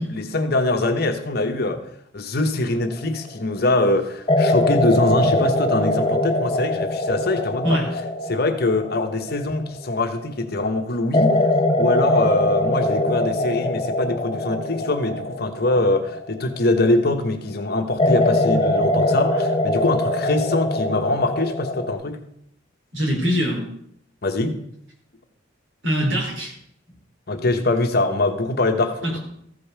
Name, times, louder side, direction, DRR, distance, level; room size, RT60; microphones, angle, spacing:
voice 1, 0.0-1.8 2.1-7.8 8.3-11.4 11.8-22.2 24.2-24.6 27.3-29.2, left 2 dB, 55° left, 6 dB, 1.2 m, -23 dB
sound 1, 2.9-3.3 4.3-10.2 11.1-17.1 18.0-21.9, left 1 dB, 30° left, 0.7 m, -22 dB
voice 2, 22.9-23.6 25.8-26.5 29.0-29.2, equal, 75° right, -2 dB, 4.8 m, -22 dB
14.5 x 5.4 x 6.7 m, 0.72 s
head